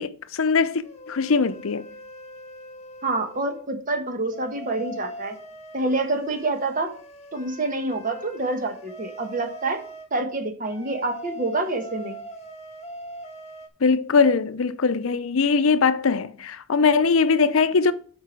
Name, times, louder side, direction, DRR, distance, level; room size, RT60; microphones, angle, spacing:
voice 1, 0.0-1.8 13.8-17.9, left 5 dB, 70° left, 0.6 m, -21 dB
sound 1, 0.8-3.6 4.3-10.1 10.6-13.7, right 1 dB, 30° left, 1.3 m, -41 dB
voice 2, 3.0-5.4 5.7-6.9 7.3-9.8 10.1-12.2, right 2 dB, 40° right, 1.2 m, -27 dB
8.1 x 4.7 x 5.9 m
head